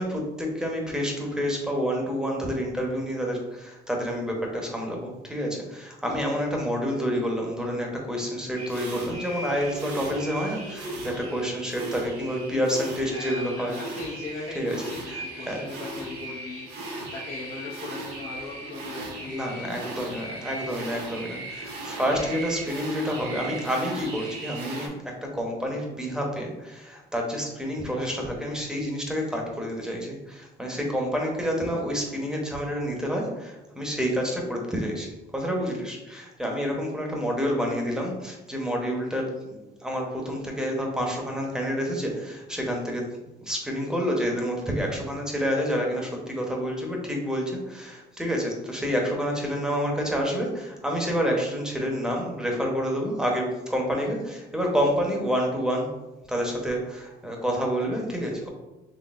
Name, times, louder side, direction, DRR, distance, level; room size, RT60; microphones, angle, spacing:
voice 1, 0.0-14.1 14.5-15.7 19.2-24.9 25.3-43.0 43.4-55.9 56.3-58.5, equal, 5° right, 0 dB, 0.8 m, -28 dB
sound 1, 8.5-24.9, right 2 dB, 80° right, 1.2 m, -37 dB
voice 2, 13.1-19.4 19.9-20.5, left 3 dB, 55° left, -4 dB, 0.7 m, -39 dB
4.0 x 3.3 x 2.4 m, 1.0 s
cardioid pair, 110°, 17 cm